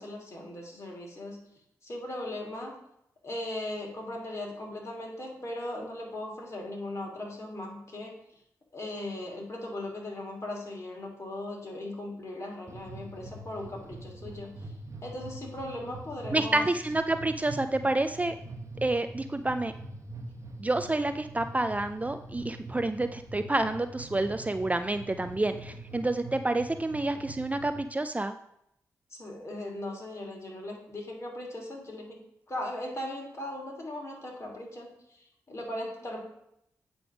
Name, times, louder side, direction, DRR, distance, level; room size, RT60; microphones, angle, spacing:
voice 1, 0.0-1.4 1.8-2.7 3.2-8.2 8.7-14.5 15.0-16.6 29.1-32.2 32.5-36.2, left 1 dB, 40° left, -1 dB, 2.8 m, -38 dB
sound 1, 12.7-27.8, right 2 dB, 45° right, 1.2 m, -44 dB
voice 2, 16.3-18.3 18.8-19.7 20.6-28.3, right 2 dB, 20° right, 9 dB, 0.4 m, -29 dB
8.5 x 3.5 x 6.1 m, 0.77 s
supercardioid pair, 45°, 7 cm